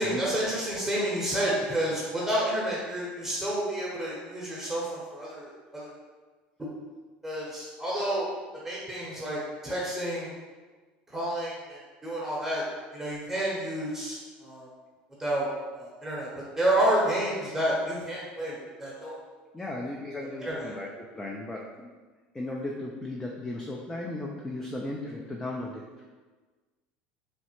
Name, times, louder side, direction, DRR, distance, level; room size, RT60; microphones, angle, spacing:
voice 1, 0.0-5.9 6.6-6.7 7.2-8.3 8.6-10.3 11.1-12.6 12.9-14.7 15.2-16.3 16.6-19.2 20.2-20.7, right 1 dB, 10° right, -6 dB, 0.8 m, -30 dB
voice 2, 19.5-21.8 22.3-26.0, left 2 dB, 15° left, -1 dB, 0.3 m, -36 dB
3.1 x 2.0 x 2.9 m, 1.3 s
supercardioid pair, 90°, 5 cm